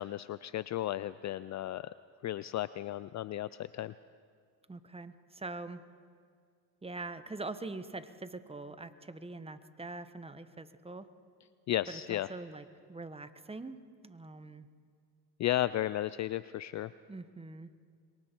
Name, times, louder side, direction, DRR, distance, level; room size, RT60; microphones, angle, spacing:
voice 1, 0.0-1.9 2.2-3.9 11.7-12.3 15.4-16.9, left 13 dB, 40° left, 16 dB, 0.4 m, -34 dB
voice 2, 4.7-5.8 6.8-11.1 11.9-14.7 17.1-17.7, right 3 dB, 10° right, 12 dB, 1.1 m, -43 dB
26.0 x 23.0 x 4.5 m, 2.1 s
supercardioid pair, 80°, 46 cm